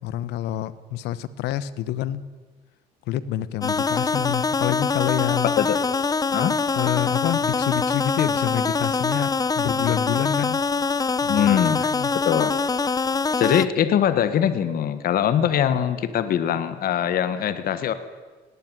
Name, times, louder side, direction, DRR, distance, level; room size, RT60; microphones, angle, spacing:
voice 1, 0.0-2.2 3.1-5.5 6.8-10.6 11.2-12.1, left 12 dB, 85° left, 16 dB, 1.2 m, -27 dB
sound 1, 3.6-13.7, left 4 dB, 20° left, 0.7 m, -24 dB
voice 2, 11.3-11.8 12.1-12.5 13.4-17.9, left 9 dB, 60° left, 12 dB, 1.5 m, -22 dB
18.5 x 18.0 x 9.3 m, 1.4 s
cardioid pair, 110°, 17 cm